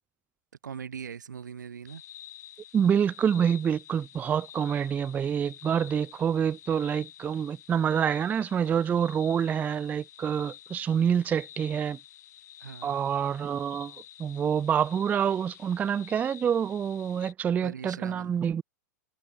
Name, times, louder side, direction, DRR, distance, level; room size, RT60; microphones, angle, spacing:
voice 1, 0.6-2.0 12.6-13.0 17.6-18.4, right 7 dB, 90° right, 4.3 m, -41 dB
sound 1, 1.8-17.3, left 12 dB, 70° left, 1.9 m, -49 dB
voice 2, 2.7-12.0 12.8-13.9 14.2-18.6, right 8 dB, 15° right, 0.3 m, -27 dB
hypercardioid pair, 115°, 10 cm